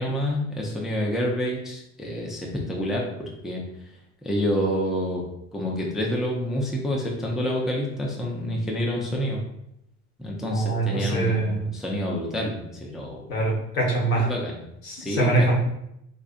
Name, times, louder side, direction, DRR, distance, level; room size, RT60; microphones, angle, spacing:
voice 1, 0.0-3.0 3.4-3.6 4.2-5.3 5.5-9.4 10.2-13.2 14.1-14.5 15.0-15.3, equal, ahead, -2 dB, 0.4 m, -28 dB
voice 2, 10.5-11.7 13.3-14.3 14.8-15.5, right 2 dB, 80° left, -3 dB, 1.2 m, -24 dB
4.0 x 2.4 x 2.4 m, 0.80 s
hypercardioid pair, 85°, 41 cm